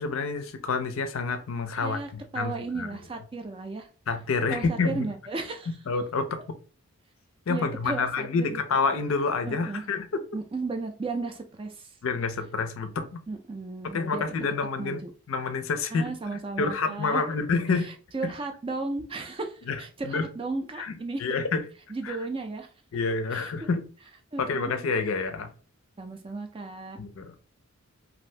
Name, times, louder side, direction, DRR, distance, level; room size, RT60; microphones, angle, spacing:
voice 1, 0.0-3.0 4.1-5.1 5.9-6.4 7.5-10.2 12.0-13.2 13.8-15.0 15.3-17.9 18.2-18.3 19.7-20.3 20.8-21.7 22.0-22.2 22.9-23.9 24.4-25.5 27.0-27.3, left 4 dB, 65° left, 0.4 m, -28 dB
voice 2, 1.8-3.9 4.5-5.7 7.5-8.6 9.5-9.8 10.3-11.9 13.3-14.2 14.8-15.1 15.9-17.2 18.1-21.2 21.9-22.7 23.3-23.7 24.3-24.7 26.0-27.0, right 3 dB, 25° right, 0.3 m, -34 dB
2.6 x 2.5 x 3.2 m
head